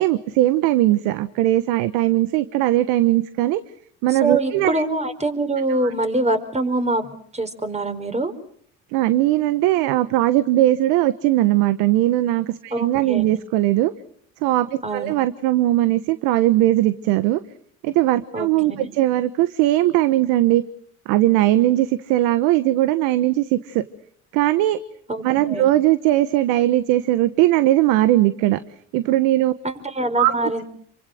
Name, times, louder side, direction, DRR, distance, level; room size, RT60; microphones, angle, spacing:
voice 1, 0.0-3.6 4.0-4.8 8.9-13.9 14.4-17.4 17.8-20.6 21.1-23.8 24.3-24.8 25.2-28.6 28.9-29.5 30.2-30.3, right 15 dB, 80° right, 14 dB, 1.2 m, -19 dB
voice 2, 4.1-8.3 12.7-13.4 14.8-15.1 18.3-18.9 25.1-25.7 29.6-30.6, right 2 dB, 20° right, 8 dB, 4.9 m, -24 dB
28.0 x 24.5 x 6.5 m, 0.65 s
supercardioid pair, 70°, 34 cm